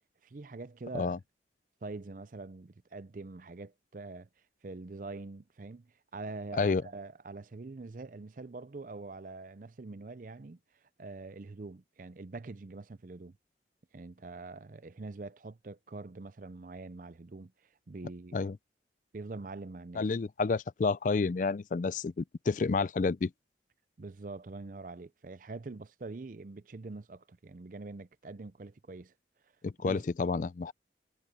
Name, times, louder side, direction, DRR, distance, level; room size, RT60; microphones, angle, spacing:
voice 1, 0.2-1.2 1.8-4.3 4.6-10.6 11.0-13.4 13.9-17.5 17.9-18.4 19.1-20.0 24.0-29.1 29.8-30.0, right 3 dB, 45° right, 0.5 m, -44 dB
voice 2, 20.0-23.3 29.6-30.7, left 4 dB, 45° left, 0.4 m, -30 dB
head